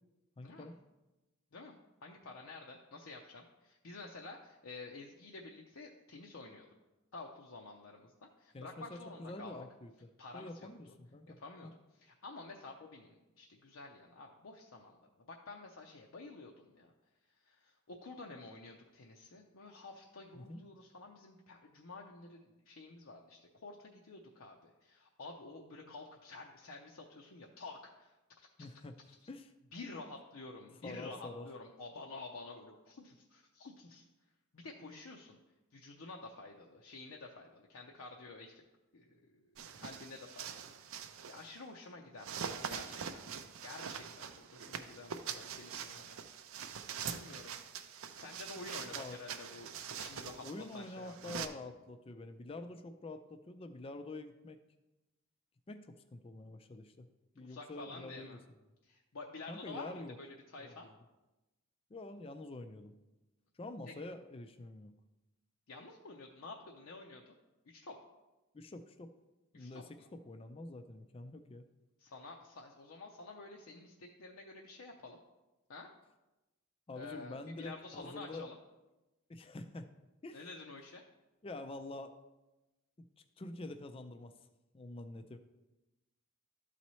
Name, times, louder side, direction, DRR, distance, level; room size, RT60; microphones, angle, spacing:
voice 1, 0.4-0.7 8.5-11.7 20.3-20.6 28.6-29.5 30.8-31.5 48.9-49.2 50.4-54.6 55.7-57.1 57.4-58.4 59.5-60.2 60.6-60.9 61.9-62.9 63.6-64.9 68.5-69.1 69.5-71.7 76.9-78.5 79.3-79.9 80.2-80.4 81.4-82.1 83.0-83.1 83.4-84.3 84.7-85.4, left 2 dB, 25° left, 8 dB, 0.4 m, -47 dB
voice 2, 1.5-6.7 7.1-9.6 10.2-10.7 11.4-11.7 12.0-15.0 15.2-16.9 17.4-28.5 29.7-34.0 34.5-35.4 35.7-38.6 38.9-40.8 41.3-43.2 43.6-46.2 47.1-47.8 48.1-49.7 50.0-50.5 50.7-51.3 57.4-58.4 58.8-60.9 65.7-67.3 67.7-68.0 69.5-70.1 72.0-75.2 75.7-75.9 76.9-78.6 80.3-81.0, left 3 dB, 65° left, 0 dB, 0.6 m, -50 dB
sound 1, 39.6-41.6 42.2-51.5, right 7 dB, 65° right, 0.5 m, -44 dB
12.5 x 4.2 x 3.1 m, 1.0 s
head